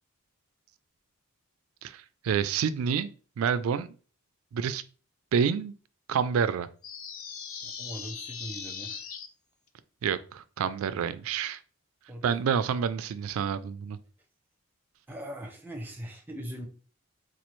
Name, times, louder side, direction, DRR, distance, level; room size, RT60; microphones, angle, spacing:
voice 1, 1.8-3.1 3.4-3.9 4.5-4.8 5.3-5.7 6.1-6.7 10.0-11.6 12.2-14.0, right 7 dB, 75° right, 0.3 m, -28 dB
sound 1, 6.8-9.3, left 6 dB, 70° left, 0.5 m, -39 dB
voice 2, 7.6-9.0 12.1-12.4 15.1-16.7, equal, 10° right, 0.5 m, -40 dB
4.2 x 2.4 x 3.0 m
head